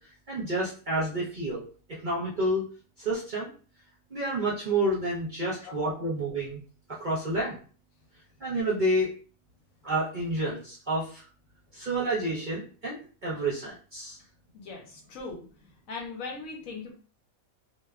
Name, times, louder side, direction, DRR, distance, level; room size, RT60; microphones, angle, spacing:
voice 1, 0.3-2.7 3.0-3.5 4.1-6.6 7.0-7.6 8.4-9.1 9.8-11.2 11.7-13.0 13.2-14.2, right 1 dB, 45° right, -7 dB, 0.6 m, -29 dB
voice 2, 5.6-6.1 14.5-15.5 15.9-16.9, left 4 dB, 70° left, 1 dB, 1.0 m, -40 dB
2.8 x 2.2 x 2.3 m, 0.39 s
omnidirectional pair, 1.5 m